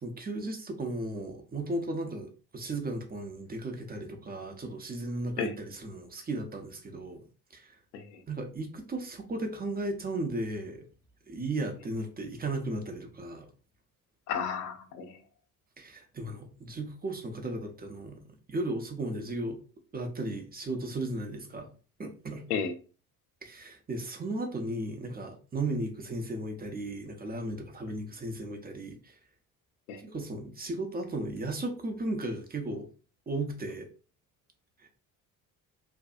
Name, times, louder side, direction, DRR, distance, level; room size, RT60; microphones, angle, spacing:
voice 1, 0.0-7.2 7.5-7.8 8.3-10.9 11.3-13.5 15.8-18.2 18.5-19.6 19.9-21.7 22.0-22.4 23.4-29.1 30.0-32.9 33.3-33.9 34.8-34.9, right 2 dB, 20° right, 0.6 m, -35 dB
voice 2, 14.3-15.1 22.5-22.7 29.9-30.0, left 6 dB, 80° left, 0.6 m, -32 dB
2.6 x 2.3 x 2.4 m
hypercardioid pair, 55°, 46 cm